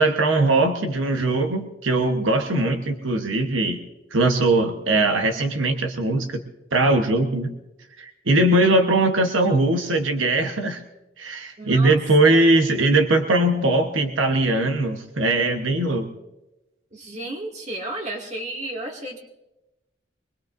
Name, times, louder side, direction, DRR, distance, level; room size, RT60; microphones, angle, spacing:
voice 1, 0.0-3.8 4.1-6.4 6.7-7.5 8.0-10.8 11.2-16.1, right 2 dB, 90° right, 5 dB, 1.1 m, -20 dB
voice 2, 11.6-12.4 16.9-19.2, right 1 dB, 35° right, 0 dB, 2.2 m, -33 dB
24.0 x 21.0 x 2.6 m, 0.97 s
head